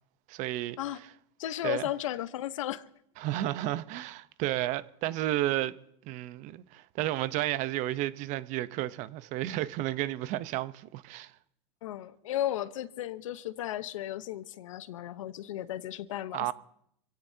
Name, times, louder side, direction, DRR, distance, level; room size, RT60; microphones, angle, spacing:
voice 1, 0.3-0.8 1.6-1.8 3.2-5.7 6.1-11.3 16.3-16.5, right 15 dB, 50° right, 0.8 m, -32 dB
voice 2, 1.4-2.9 11.8-16.5, left 12 dB, 85° left, 1.0 m, -35 dB
27.0 x 17.0 x 2.8 m
supercardioid pair, 125°, 16 cm